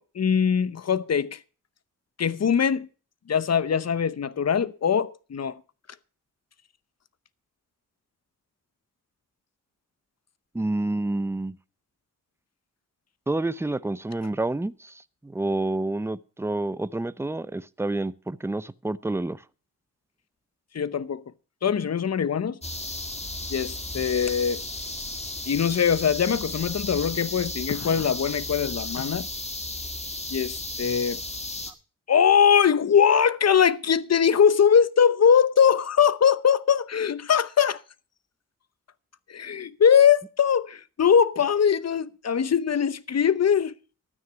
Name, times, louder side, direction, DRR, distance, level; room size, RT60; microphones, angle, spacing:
voice 1, 0.0-1.4 2.2-2.9 3.3-5.6 20.7-21.2 21.6-22.6 23.5-24.6 25.5-29.3 30.3-31.2 32.1-37.8 39.3-43.7, left 7 dB, 50° left, 0.8 m, -21 dB
voice 2, 10.5-11.6 13.3-14.9 15.2-19.4, right 2 dB, 10° right, 0.6 m, -28 dB
sound 1, 22.6-31.7, left 2 dB, 20° left, 1.9 m, -34 dB
12.5 x 9.5 x 5.8 m
cardioid pair, 80°, 34 cm